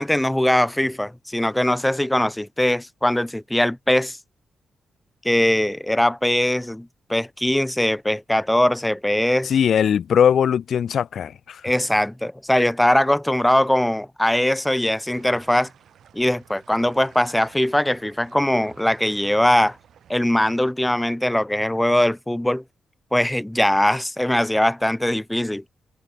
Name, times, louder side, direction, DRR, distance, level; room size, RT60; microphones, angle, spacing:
voice 1, 0.0-4.2 5.2-9.5 11.6-15.7 16.1-19.8 20.1-22.6 23.1-25.6, left 1 dB, 5° left, 0.5 m, -21 dB
voice 2, 9.5-11.6, left 8 dB, 55° left, 0.6 m, -20 dB
sound 1, 15.1-20.1, right 9 dB, 65° right, 6.9 m, -53 dB
wide cardioid pair, 175°, 0 cm